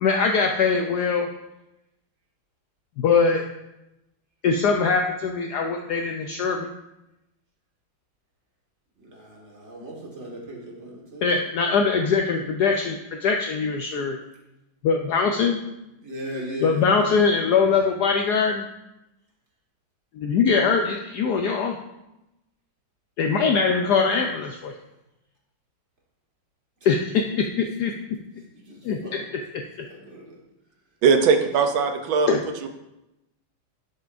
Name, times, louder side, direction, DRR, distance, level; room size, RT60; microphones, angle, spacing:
voice 1, 0.0-1.3 3.0-3.4 4.4-6.7 11.2-14.2 14.8-15.6 16.6-18.6 20.1-21.8 23.2-24.7 26.8-27.0 27.6-27.9 28.8-29.0 32.3-32.4, left 5 dB, 75° left, 3 dB, 0.9 m, -22 dB
voice 2, 9.0-11.3 16.0-17.6 24.1-24.3 28.3-29.3 29.8-30.4 31.2-31.5, equal, 35° right, -2 dB, 1.7 m, -38 dB
voice 3, 31.0-32.3 32.6-32.7, right 5 dB, 80° right, 7 dB, 1.5 m, -19 dB
10.5 x 6.8 x 2.6 m, 0.92 s
omnidirectional pair, 2.2 m